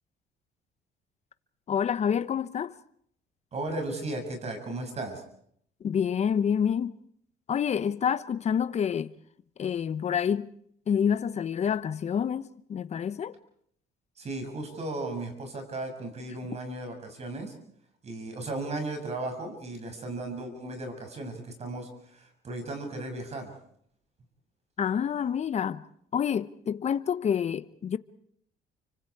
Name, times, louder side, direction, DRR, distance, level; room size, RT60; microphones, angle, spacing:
voice 1, 1.7-2.8 5.8-7.0 7.5-9.1 9.6-10.5 10.9-13.4 24.8-25.8 26.1-28.0, left 8 dB, 40° left, 1.0 m, -28 dB
voice 2, 3.5-5.2 14.2-17.5 18.0-23.5, right 2 dB, 40° right, 7.1 m, -36 dB
29.5 x 25.0 x 4.8 m
cardioid pair, 110°, 17 cm